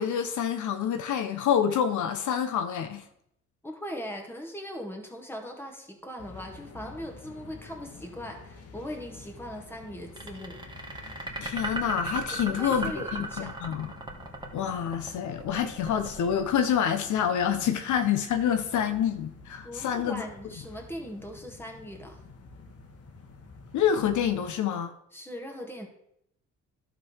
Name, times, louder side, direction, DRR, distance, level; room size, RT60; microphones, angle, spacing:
voice 1, 0.0-3.0 11.4-13.9 14.5-20.2 23.7-24.9, left 8 dB, 75° left, 0.8 m, -27 dB
voice 2, 3.6-10.6 12.3-13.6 19.6-22.2 25.1-25.9, equal, 5° left, 2.0 m, -40 dB
sound 1, 6.2-24.5, left 3 dB, 55° left, 1.5 m, -49 dB
sound 2, 10.2-17.3, right 3 dB, 15° right, 1.7 m, -36 dB
11.5 x 3.9 x 6.3 m
cardioid pair, 90°, 30 cm